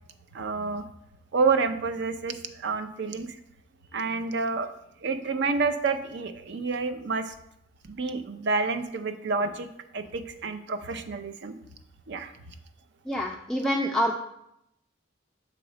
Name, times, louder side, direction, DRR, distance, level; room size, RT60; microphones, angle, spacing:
voice 1, 0.3-0.8 1.3-3.3 3.9-4.7 5.0-7.3 7.8-9.7 9.9-11.5 12.1-12.3, right 4 dB, 65° right, 9 dB, 0.5 m, -29 dB
voice 2, 13.1-14.1, equal, 5° left, 0 dB, 0.3 m, -26 dB
6.9 x 3.0 x 4.9 m, 0.79 s
head